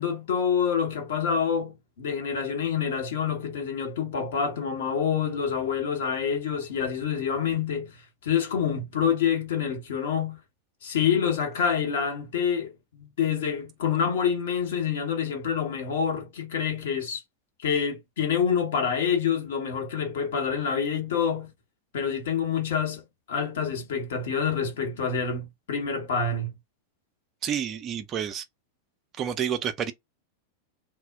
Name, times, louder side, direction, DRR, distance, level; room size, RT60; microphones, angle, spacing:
voice 1, 0.0-7.9 8.2-10.4 10.8-17.2 17.6-21.5 21.9-23.0 23.3-26.5, left 7 dB, 60° left, 0.9 m, -27 dB
voice 2, 27.4-28.5 29.2-29.9, right 8 dB, 30° right, 0.4 m, -29 dB
2.1 x 2.0 x 3.5 m
figure-of-eight pair, 90°, 0 cm